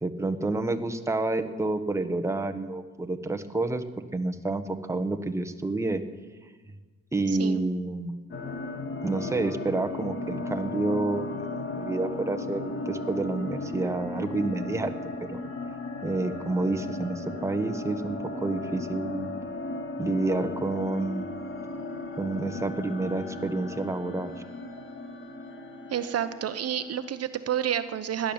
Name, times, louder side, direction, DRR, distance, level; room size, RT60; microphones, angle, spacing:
voice 1, 0.0-3.8 4.1-4.6 4.9-6.0 7.1-8.2 9.0-11.4 11.7-14.9 15.3-15.4 16.0-18.2 18.4-19.3 20.0-21.3 22.2-24.3, right 2 dB, 10° right, 7 dB, 1.2 m, -29 dB
voice 2, 7.3-7.6 25.9-28.3, right 9 dB, 55° right, 11 dB, 0.8 m, -29 dB
sound 1, 8.3-27.2, left 2 dB, 40° left, 1.8 m, -36 dB
16.5 x 10.5 x 7.2 m, 1.4 s
cardioid pair, 90°, 30 cm